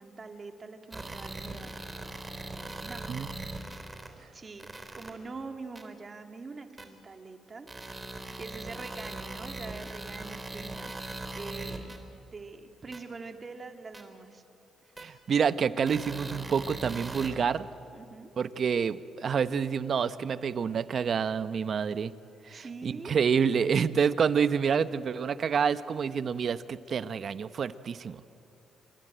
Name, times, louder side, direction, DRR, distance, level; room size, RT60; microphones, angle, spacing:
voice 1, 0.0-1.7 2.8-3.2 4.3-4.7 5.0-11.9 12.3-14.4 17.9-18.3 22.5-23.5, right 4 dB, 35° right, 5 dB, 2.2 m, -44 dB
sound 1, 0.9-4.1 4.6-5.1 5.8-5.9 6.8-6.9 7.7-12.0 12.9-13.0 13.9-14.0 15.0-15.1 15.9-17.3, right 2 dB, 20° right, 3.4 m, -40 dB
voice 2, 15.0-17.7 18.4-22.1 22.5-28.2, right 6 dB, 50° right, 13 dB, 0.9 m, -28 dB
27.5 x 22.5 x 9.0 m, 2.6 s
cardioid pair, 90°, 0 cm